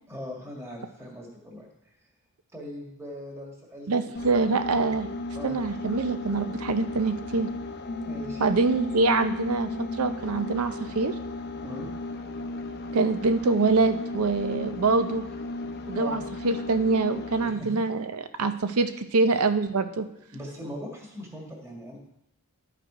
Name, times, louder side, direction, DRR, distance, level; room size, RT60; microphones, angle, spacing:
voice 1, 0.1-2.0 2.5-4.1 5.3-5.6 8.0-8.4 11.6-11.9 16.0-16.2 17.4-17.8 19.3-19.4 20.3-22.0, left 1 dB, 10° right, -2 dB, 1.6 m, -40 dB
voice 2, 3.9-5.1 5.4-7.5 8.4-9.7 10.0-11.1 12.9-15.3 15.9-18.1 18.4-20.1, right 3 dB, 80° right, 10 dB, 0.6 m, -25 dB
sound 1, 4.2-17.7, left 2 dB, 50° left, 0.6 m, -35 dB
11.5 x 4.9 x 4.8 m, 0.83 s
head